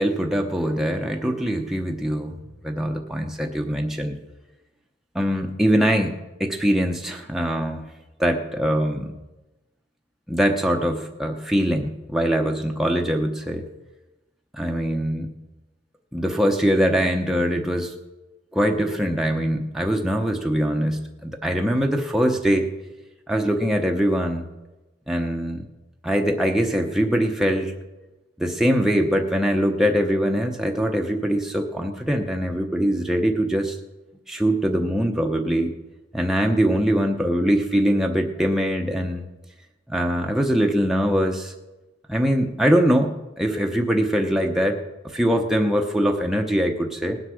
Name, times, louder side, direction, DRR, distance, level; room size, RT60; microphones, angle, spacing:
voice 1, 0.0-2.4 2.6-4.1 5.1-6.1 6.4-7.8 8.2-9.1 10.3-13.6 14.5-15.3 16.1-17.9 18.5-22.7 23.3-24.4 25.1-25.7 26.0-27.7 28.4-33.8 34.3-35.7 36.1-39.2 39.9-41.5 42.1-44.8 45.1-47.2, equal, ahead, 1 dB, 0.8 m, -22 dB
19.0 x 8.0 x 6.3 m, 1.1 s
head